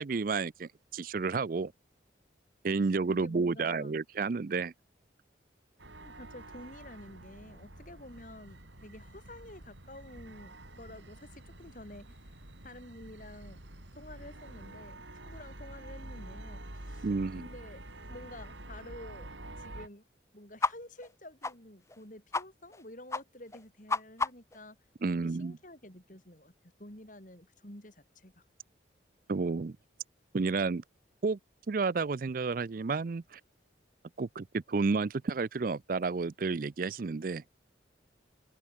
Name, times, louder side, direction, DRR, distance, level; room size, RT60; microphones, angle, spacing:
voice 1, 0.0-1.7 2.6-4.7 17.0-17.5 25.0-25.6 29.3-29.8 30.3-30.8 31.2-31.4 31.7-33.4 34.2-37.4, right 4 dB, 50° right, 0.4 m, -31 dB
voice 2, 3.1-4.0 6.0-13.6 14.0-17.1 17.4-17.8 18.1-19.3 19.6-20.1 20.3-24.8 25.1-28.4, left 1 dB, 45° left, 5.9 m, -50 dB
sound 1, 5.8-19.9, right 1 dB, 85° right, 4.9 m, -48 dB
sound 2, 20.6-20.7 21.0-21.1 21.4-21.5 21.9-22.0 22.3-22.4 22.7-22.8 23.1-23.2 23.5-24.6, left 3 dB, 15° left, 0.9 m, -31 dB
open air
head